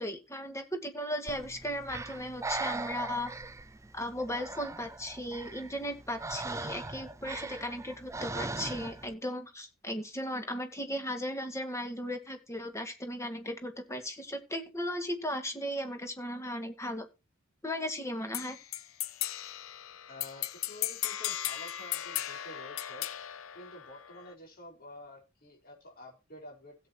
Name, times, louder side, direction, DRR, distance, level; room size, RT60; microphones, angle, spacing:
voice 1, 0.0-3.3 3.9-17.1 17.6-18.6, equal, 15° left, 6 dB, 2.0 m, -36 dB
Breathing, 1.3-9.1, right 3 dB, 15° right, 0.6 m, -40 dB
sound 1, 18.3-24.3, left 13 dB, 75° left, 0.7 m, -37 dB
voice 2, 20.1-23.1 23.5-26.7, left 1 dB, 50° left, 0 dB, 4.9 m, -49 dB
16.5 x 8.0 x 3.0 m, 0.28 s
head